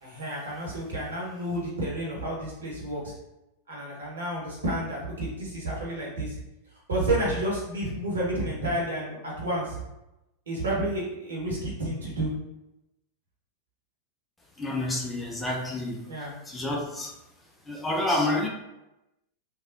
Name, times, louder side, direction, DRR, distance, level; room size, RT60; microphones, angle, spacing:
voice 1, 0.0-3.1 3.7-6.3 6.9-9.8 10.5-12.3 16.1-16.3, right 1 dB, 65° right, -4 dB, 1.1 m, -30 dB
voice 2, 14.6-17.1 17.7-18.5, left 1 dB, 10° left, -1 dB, 0.4 m, -29 dB
3.2 x 2.3 x 2.5 m, 0.93 s
figure-of-eight pair, 90°, 0 cm